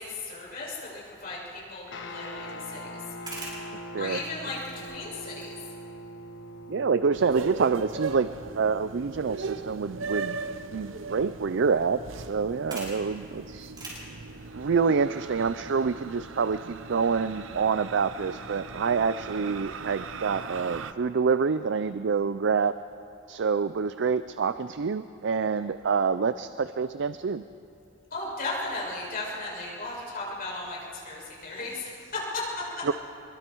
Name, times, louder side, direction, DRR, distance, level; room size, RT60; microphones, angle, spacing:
voice 1, 0.0-3.0 4.0-5.6 28.1-32.4, left 2 dB, 50° left, -5 dB, 7.0 m, -36 dB
Guitar, 1.9-13.3, equal, 65° left, 1.4 m, -44 dB
sound 1, 3.0-18.7, right 1 dB, 25° right, 6.7 m, -49 dB
voice 2, 6.7-8.3 8.6-10.4 10.7-13.7 14.5-22.7 23.3-27.4 32.8-32.9, right 5 dB, 65° right, 13 dB, 0.5 m, -27 dB
sound 2, 7.1-20.9, right 4 dB, 85° right, 0.8 m, -39 dB
25.0 x 22.5 x 4.6 m, 2.7 s
head